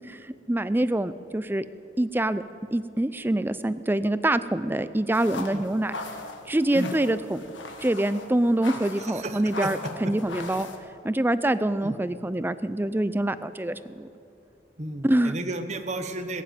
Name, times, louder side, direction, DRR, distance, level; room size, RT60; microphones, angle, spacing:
voice 1, 0.1-1.6 2.0-2.4 2.7-5.9 6.5-7.4 7.8-10.7 11.0-14.1 15.0-15.3, right 1 dB, 10° right, 14 dB, 0.4 m, -25 dB
sound 1, 5.1-10.8, left 3 dB, 75° left, 1.5 m, -39 dB
voice 2, 9.0-9.7 11.8-12.0 14.8-16.4, right 2 dB, 35° right, 8 dB, 1.0 m, -33 dB
20.0 x 7.5 x 9.2 m, 2.7 s
head